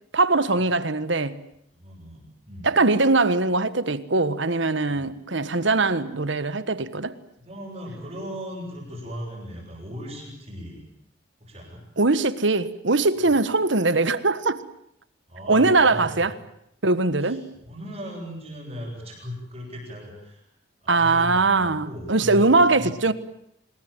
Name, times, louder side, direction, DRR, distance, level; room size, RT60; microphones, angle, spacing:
voice 1, 0.1-1.4 2.6-7.2 12.0-14.6 15.5-16.3 16.8-17.5 20.9-23.1, right 3 dB, 70° right, 1.4 m, -21 dB
voice 2, 1.7-2.7 7.4-10.9 11.4-11.8 13.2-13.3 15.3-16.3 17.2-20.4 20.8-22.9, equal, 30° right, 8.0 m, -38 dB
26.5 x 20.5 x 9.1 m
head